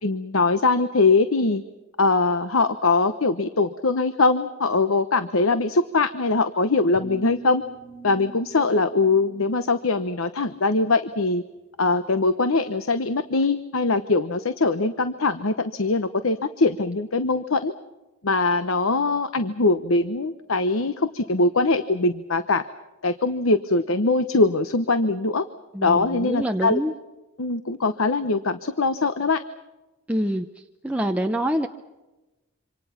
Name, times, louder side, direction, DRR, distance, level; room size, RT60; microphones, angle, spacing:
voice 1, 0.0-1.6 2.0-7.6 8.0-11.4 11.8-17.7 18.2-22.6 23.0-25.4 25.8-26.8 27.4-29.4, left 3 dB, 80° left, 11 dB, 1.0 m, -22 dB
sound 1, 7.0-10.1, right 4 dB, 45° right, 5.8 m, -43 dB
voice 2, 25.7-26.9 30.1-30.5 30.8-31.7, equal, 5° right, 3 dB, 0.8 m, -25 dB
27.0 x 26.5 x 5.8 m, 1.1 s
head